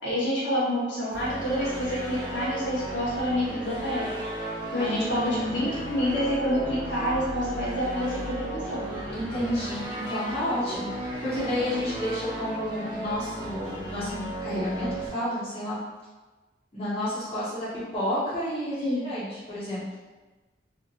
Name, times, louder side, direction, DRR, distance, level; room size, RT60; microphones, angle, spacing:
voice 1, 0.0-4.1 4.7-9.1 18.8-19.0, equal, 75° left, -9 dB, 1.0 m, -28 dB
sound 1, 1.1-15.1, right 1 dB, 25° right, 0.8 m, -35 dB
voice 2, 4.8-5.6 9.1-15.8 16.7-17.7 17.9-19.8, left 1 dB, 30° left, -11 dB, 1.0 m, -31 dB
2.8 x 2.4 x 2.3 m, 1.2 s
head